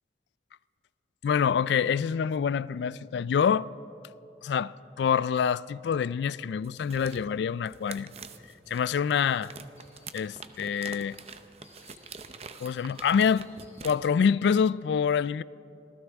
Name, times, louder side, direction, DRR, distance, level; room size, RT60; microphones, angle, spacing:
voice 1, 1.2-3.7 4.4-8.1 8.7-9.5 10.1-11.2 12.6-13.5 13.8-15.4, left 7 dB, 75° left, 0.3 m, -26 dB
sound 1, 6.6-13.9, right 5 dB, 35° right, 0.7 m, -46 dB
sound 2, 9.3-14.3, left 2 dB, 15° left, 4.6 m, -61 dB
26.0 x 16.0 x 3.5 m
head